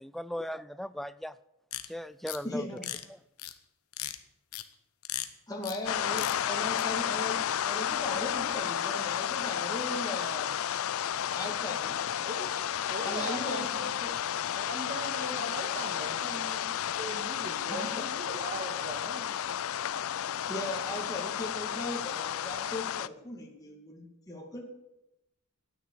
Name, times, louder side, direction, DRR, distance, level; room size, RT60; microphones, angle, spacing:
voice 1, 0.0-1.3 1.9-2.7, equal, ahead, 15 dB, 0.4 m, -37 dB
sound 1, 1.7-1.8 2.3-2.4 2.8-3.0 3.4-3.5 3.9-4.1 4.5-4.6 5.0-5.3 5.6-5.8 6.1-6.4 6.8-6.9, left 13 dB, 85° left, 1.1 m, -36 dB
voice 2, 2.4-2.9 5.5-10.5 11.3-11.9 13.0-14.1 17.7-18.1 20.5-24.6, left 1 dB, 15° left, -2 dB, 2.4 m, -38 dB
sound 2, 5.9-23.1, left 10 dB, 70° left, 0.4 m, -32 dB
voice 3, 12.9-13.9 14.5-19.4, right 1 dB, 35° right, 3 dB, 1.9 m, -40 dB
13.0 x 9.5 x 8.5 m, 0.89 s
head